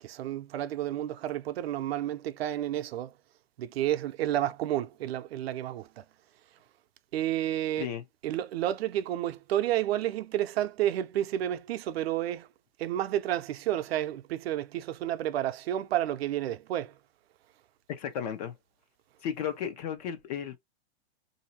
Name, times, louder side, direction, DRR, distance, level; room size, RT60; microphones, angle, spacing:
voice 1, 0.0-3.1 3.6-6.0 7.1-7.9 8.2-12.5 12.8-16.9, right 12 dB, 65° right, 0.6 m, -30 dB
voice 2, 17.9-18.5 19.2-20.6, left 9 dB, 35° left, 0.6 m, -34 dB
3.9 x 2.7 x 2.8 m
supercardioid pair, 160°, 33 cm